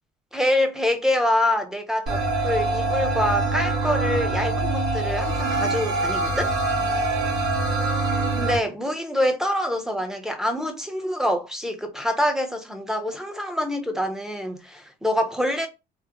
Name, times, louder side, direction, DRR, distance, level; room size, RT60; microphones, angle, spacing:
voice 1, 0.3-6.5 8.3-15.7, left 1 dB, 5° right, 0.7 m, -25 dB
sound 1, 2.1-8.6, right 2 dB, 85° right, 1.8 m, -24 dB
3.6 x 2.0 x 2.9 m
cardioid pair, 110°, 17 cm